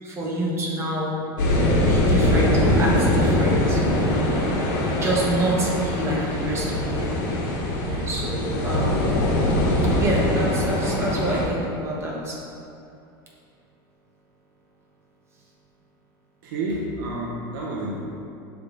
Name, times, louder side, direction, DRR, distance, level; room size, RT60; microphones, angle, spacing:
voice 1, 0.0-1.2 1.9-4.5 5.0-7.1 7.8-9.2 10.0-12.4, right 1 dB, 20° right, -4 dB, 1.2 m, -27 dB
sound 1, 1.4-11.4, left 1 dB, 60° left, 1.4 m, -22 dB
voice 2, 16.4-18.0, right 1 dB, 70° right, -4 dB, 0.9 m, -29 dB
6.7 x 3.6 x 3.9 m, 2.6 s
supercardioid pair, 120°, 12 cm